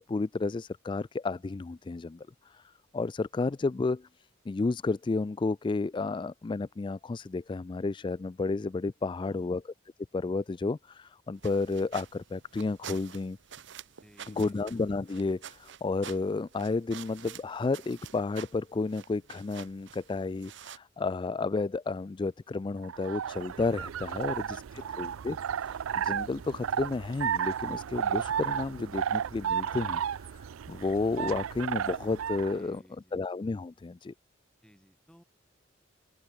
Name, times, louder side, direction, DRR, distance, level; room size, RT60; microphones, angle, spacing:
voice 1, 0.0-9.6 10.1-13.4 14.3-24.6 25.0-32.8 33.1-34.1, left 3 dB, 25° left, 0.3 m, -32 dB
voice 2, 9.0-9.6 14.0-14.7 24.1-25.3 32.5-33.3 34.6-35.2, equal, 5° left, 3.5 m, -58 dB
sound 1, 11.3-20.8, right 8 dB, 60° right, 0.9 m, -48 dB
sound 2, 22.8-32.6, right 8 dB, 90° right, 0.4 m, -33 dB
open air
head